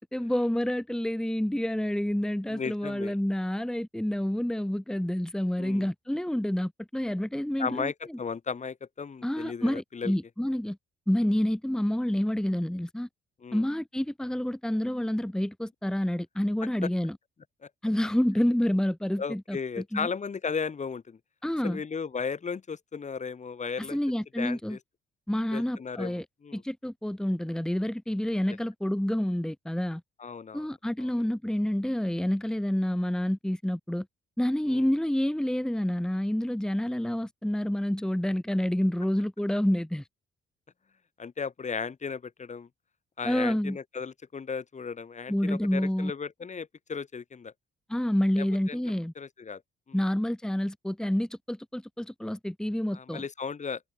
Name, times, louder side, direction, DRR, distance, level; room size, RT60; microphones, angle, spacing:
voice 1, 0.0-7.9 9.2-10.8 11.1-13.1 13.5-17.2 17.8-19.6 19.9-20.1 21.4-21.8 23.9-24.8 25.3-26.2 26.5-30.0 30.5-34.1 34.4-40.0 43.2-43.8 45.3-46.1 47.9-49.1 49.9-53.2, equal, 5° left, 1.4 m, -28 dB
voice 2, 2.5-3.1 5.6-5.9 7.6-10.1 13.4-13.7 17.6-17.7 19.2-21.2 21.6-24.0 24.4-24.8 25.5-26.6 30.2-30.7 31.0-31.3 34.7-34.9 41.2-42.7 43.2-47.5 48.4-48.8 49.2-49.6 49.9-50.0 52.9-53.9, left 5 dB, 35° left, 2.9 m, -35 dB
cardioid pair, 90°, 20 cm